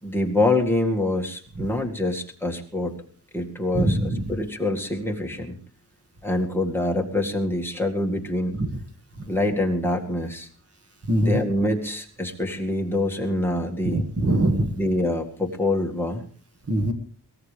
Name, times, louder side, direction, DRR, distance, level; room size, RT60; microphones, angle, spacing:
voice 1, 0.0-3.0 3.3-5.6 6.2-8.6 9.3-10.5 11.2-14.0 14.8-16.2, left 1 dB, 5° left, 0 dB, 2.2 m, -25 dB
voice 2, 3.7-4.2 8.6-8.8 9.2-9.3 11.1-11.4 13.8-14.8 16.7-16.9, right 1 dB, 40° right, 7 dB, 1.9 m, -23 dB
22.5 x 17.5 x 3.5 m, 0.43 s
wide cardioid pair, 115°, 37 cm